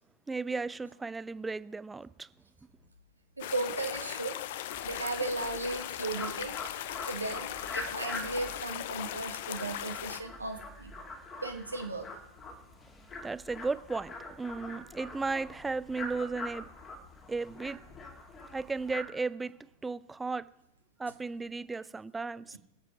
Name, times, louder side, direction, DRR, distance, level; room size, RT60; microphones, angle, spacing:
voice 1, 0.3-2.3 13.2-16.7 17.3-17.8 18.5-19.6 19.8-20.5 21.0-22.6, right 4 dB, 10° right, 0.4 m, -35 dB
sound 1, 3.4-10.2, left 12 dB, 55° left, 0.6 m, -38 dB
voice 2, 3.4-4.4 4.8-6.6 7.0-10.9 11.4-12.1, right 2 dB, 80° right, 1.3 m, -36 dB
sound 2, 4.7-19.0, left 2 dB, 25° left, 2.5 m, -44 dB
24.0 x 8.2 x 4.7 m
figure-of-eight pair, 90°, 0 cm